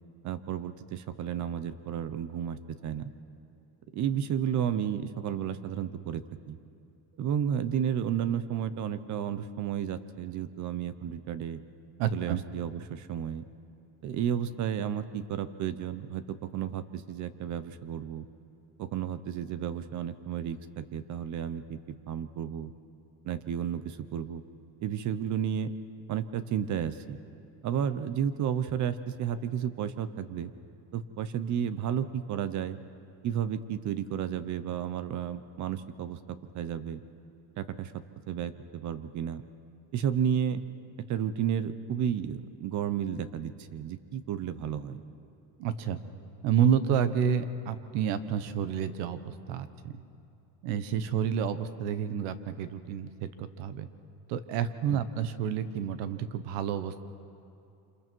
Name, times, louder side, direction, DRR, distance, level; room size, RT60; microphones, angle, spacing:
voice 1, 0.2-3.1 3.9-6.6 7.2-11.6 12.1-13.4 14.0-18.3 18.8-22.7 23.2-24.4 24.8-25.7 26.1-27.2 27.6-30.5 30.9-32.8 33.2-37.0 37.6-39.4 39.9-40.6 41.1-45.0 54.9-55.0, right 9 dB, 40° right, 13 dB, 1.0 m, -32 dB
voice 2, 12.0-12.4 45.6-46.0 46.4-50.0 50.6-53.9 54.3-57.0, right 8 dB, 65° right, 12 dB, 1.3 m, -29 dB
28.0 x 27.0 x 4.7 m, 2.7 s
cardioid pair, 150°, 46 cm